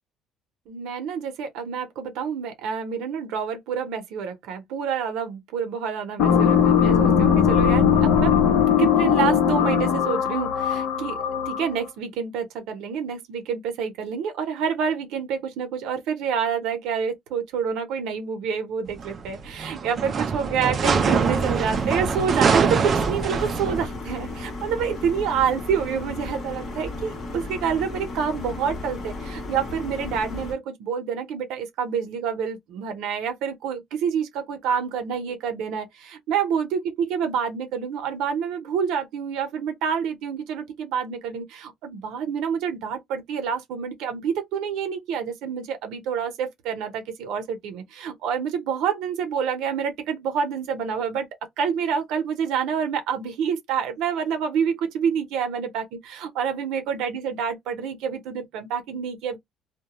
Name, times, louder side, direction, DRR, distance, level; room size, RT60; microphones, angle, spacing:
voice 1, 0.7-8.4 8.6-11.2 11.5-51.3 51.6-59.4, right 7 dB, 80° right, 0.7 m, -28 dB
sound 1, 6.2-11.8, left 7 dB, 90° left, 0.7 m, -19 dB
sound 2, 18.9-23.9, right 5 dB, 30° right, 0.3 m, -24 dB
sound 3, 20.8-30.5, left 2 dB, 35° left, 0.8 m, -34 dB
2.2 x 2.1 x 2.8 m
cardioid pair, 160°, 0 cm